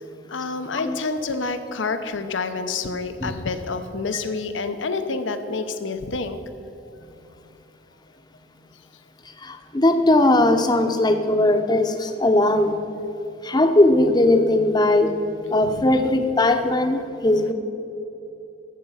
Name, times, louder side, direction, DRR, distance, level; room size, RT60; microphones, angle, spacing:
voice 1, 0.3-6.4 15.6-15.9, left 4 dB, 80° left, 9 dB, 0.8 m, -28 dB
voice 2, 9.4-12.8 13.4-15.1 15.5-17.5, left 1 dB, 20° left, 7 dB, 0.7 m, -19 dB
12.5 x 8.0 x 5.6 m, 2.9 s
head